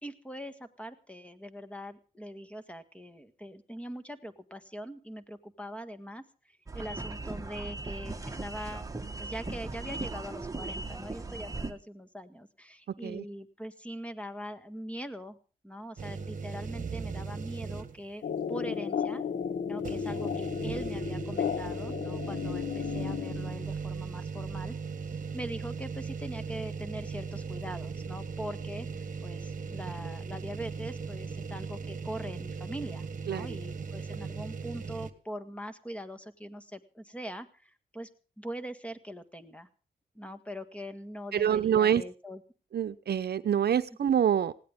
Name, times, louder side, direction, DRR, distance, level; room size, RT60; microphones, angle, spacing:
voice 1, 0.0-8.8 9.2-15.4 15.6-18.2 18.5-19.2 19.6-24.7 25.0-38.1 38.4-39.7 40.1-42.4, equal, 5° left, 10 dB, 1.8 m, -42 dB
sound 1, 6.7-11.7, right 2 dB, 20° right, 1.7 m, -38 dB
sound 2, 16.0-18.1 18.5-18.6 19.8-35.1, right 5 dB, 50° right, 1.6 m, -38 dB
sound 3, 18.2-23.7, left 7 dB, 65° left, 1.0 m, -34 dB
voice 2, 33.3-33.6 41.3-42.0 42.7-44.5, right 9 dB, 70° right, 11 dB, 0.8 m, -26 dB
20.0 x 16.5 x 3.7 m, 0.36 s
cardioid pair, 75°, 18 cm